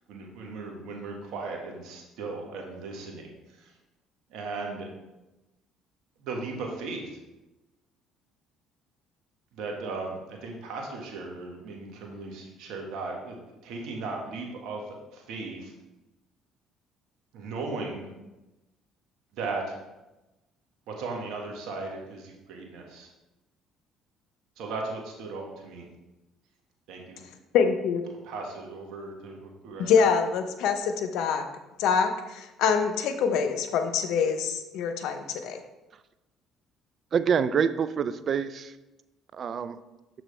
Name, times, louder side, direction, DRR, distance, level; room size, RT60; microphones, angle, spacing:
voice 1, 0.1-3.7 4.3-4.9 6.2-7.2 9.5-15.7 17.3-18.1 19.3-19.8 20.9-23.1 24.6-25.9 26.9-27.2 28.2-29.9, right 3 dB, 70° right, 1 dB, 1.5 m, -37 dB
voice 2, 27.5-28.0 29.8-31.5 31.8-35.6, left 6 dB, 70° left, 7 dB, 0.7 m, -25 dB
voice 3, 37.1-38.7 39.3-39.8, right 7 dB, 50° right, 14 dB, 0.4 m, -26 dB
6.7 x 6.1 x 3.3 m, 1.0 s
hypercardioid pair, 60°, 0 cm